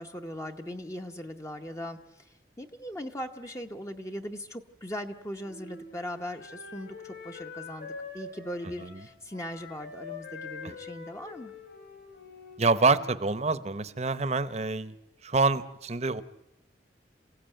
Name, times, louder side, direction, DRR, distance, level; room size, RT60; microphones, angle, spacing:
voice 1, 0.0-2.0 2.6-11.5, equal, 15° left, 4 dB, 0.8 m, -39 dB
Wind instrument woodwind instrument, 5.4-13.2, left 4 dB, 65° left, 7.8 m, -45 dB
voice 2, 12.6-14.9 15.2-16.2, right 3 dB, 35° right, 15 dB, 0.9 m, -26 dB
27.5 x 16.5 x 9.1 m, 0.91 s
head